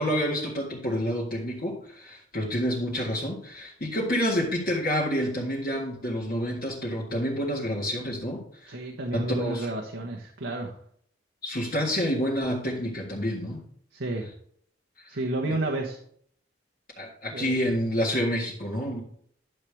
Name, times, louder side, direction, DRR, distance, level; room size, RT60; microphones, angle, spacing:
voice 1, 0.0-8.8 9.1-9.7 11.4-13.7 15.0-15.1 15.4-15.6 17.0-19.0, equal, 50° left, -4 dB, 1.7 m, -28 dB
voice 2, 8.7-10.7 13.9-14.3 15.1-16.0 17.3-17.7, right 2 dB, 85° right, 0 dB, 1.1 m, -31 dB
11.0 x 6.7 x 3.5 m, 0.63 s
head